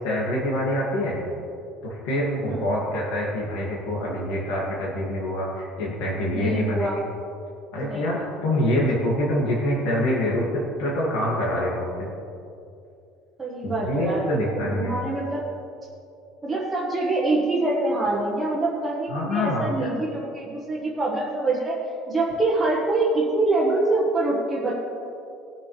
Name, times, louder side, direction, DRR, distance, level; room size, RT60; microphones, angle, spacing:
voice 1, 0.0-1.3 1.8-6.9 7.7-10.4 10.8-12.1 13.6-15.0 19.1-19.9, left 1 dB, 80° left, -5 dB, 2.2 m, -25 dB
voice 2, 2.5-2.8 6.3-7.0 7.8-8.3 13.4-15.4 16.4-21.8 22.1-24.7, right 2 dB, 10° right, -6 dB, 1.3 m, -25 dB
19.0 x 7.1 x 3.3 m, 2.6 s
cardioid pair, 170°, 0 cm